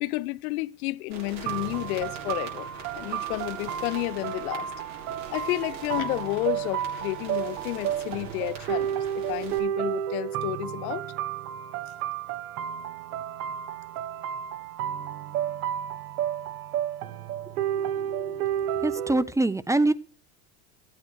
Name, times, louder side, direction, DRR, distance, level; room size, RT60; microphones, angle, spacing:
voice 1, 0.0-2.7 2.9-4.7 5.3-11.1, left 20 dB, 80° left, 0.7 m, -31 dB
sound 1, 1.1-9.6, right 6 dB, 40° right, 6.9 m, -42 dB
sound 2, 1.5-19.2, right 10 dB, 85° right, 1.4 m, -32 dB
voice 2, 17.7-18.5 18.7-19.9, right 2 dB, 5° right, 0.7 m, -26 dB
14.5 x 9.3 x 6.4 m
supercardioid pair, 115°, 43 cm